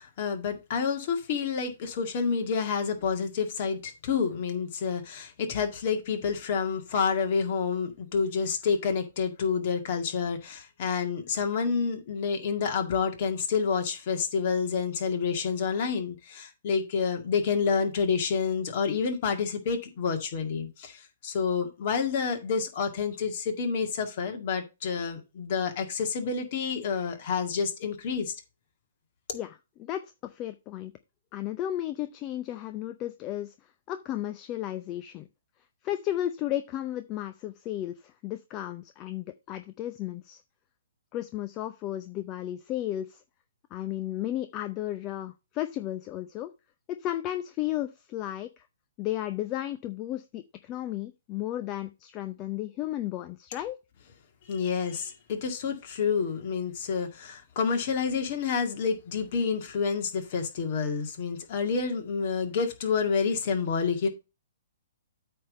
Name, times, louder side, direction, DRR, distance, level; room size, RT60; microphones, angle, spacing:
voice 1, 0.0-28.3 54.5-64.1, left 6 dB, 50° left, 2.0 m, -29 dB
voice 2, 29.3-30.9 31.3-33.5 33.9-35.3 35.8-40.4 41.1-43.2 43.7-46.5 46.9-48.7 49.0-53.8, left 13 dB, 30° left, 0.6 m, -34 dB
8.6 x 3.6 x 6.5 m
hypercardioid pair, 130°, 0 cm